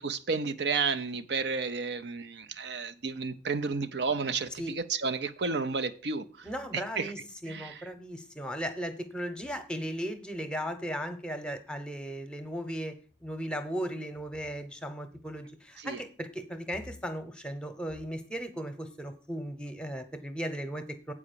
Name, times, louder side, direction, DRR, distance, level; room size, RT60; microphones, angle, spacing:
voice 1, 0.0-6.5 6.7-7.1 7.5-7.9 15.8-16.0, right 4 dB, 70° right, 0.6 m, -32 dB
voice 2, 6.4-12.9 13.2-21.1, equal, 5° left, 0.9 m, -36 dB
8.5 x 4.9 x 6.7 m
head